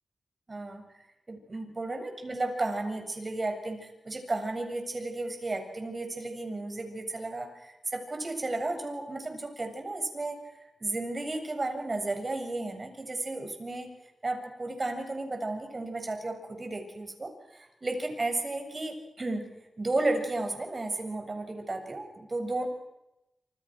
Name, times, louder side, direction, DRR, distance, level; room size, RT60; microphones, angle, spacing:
voice 1, 0.5-13.9 14.2-19.5 19.8-22.7, right 2 dB, 40° right, 5 dB, 7.3 m, -33 dB
27.0 x 27.0 x 6.4 m, 0.93 s
cardioid pair, 50°, 0 cm